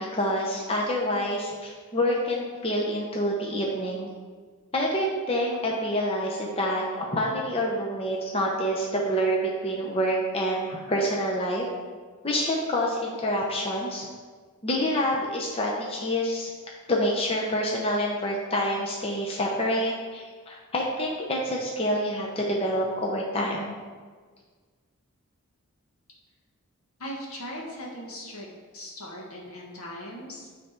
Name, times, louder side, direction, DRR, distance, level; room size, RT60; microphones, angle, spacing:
voice 1, 0.0-4.1 4.7-11.7 12.2-14.1 14.6-16.5 16.9-23.8, equal, 25° left, -2 dB, 0.7 m, -27 dB
voice 2, 27.0-28.5 28.7-30.5, equal, 75° left, -2 dB, 1.5 m, -39 dB
9.1 x 3.4 x 4.4 m, 1.5 s
head